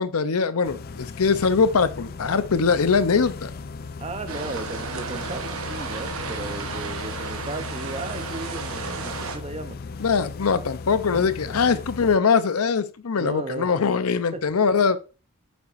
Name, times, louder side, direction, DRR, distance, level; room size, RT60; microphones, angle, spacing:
voice 1, 0.0-3.5 10.0-15.0, left 5 dB, 85° left, 0.6 m, -22 dB
sound 1, 0.6-12.2, left 4 dB, 45° left, 0.3 m, -37 dB
voice 2, 4.0-9.8 11.1-11.3 13.2-13.7 14.3-14.4, right 2 dB, 30° right, 0.7 m, -35 dB
sound 2, 4.3-9.4, right 4 dB, 75° right, 1.0 m, -33 dB
8.7 x 5.7 x 2.5 m
head